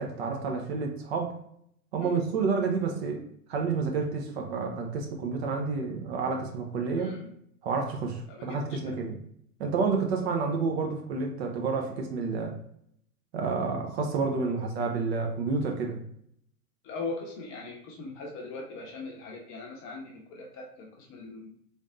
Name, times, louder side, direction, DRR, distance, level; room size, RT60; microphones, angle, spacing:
voice 1, 0.0-1.3 1.9-7.2 7.6-9.2 9.6-12.6 13.3-16.0, right 4 dB, 45° right, 2 dB, 0.8 m, -29 dB
voice 2, 7.0-7.3 8.3-9.0 14.4-14.7 16.8-21.5, left 3 dB, 25° left, 0 dB, 0.8 m, -40 dB
4.0 x 3.4 x 2.4 m, 0.70 s
figure-of-eight pair, 100°, 46 cm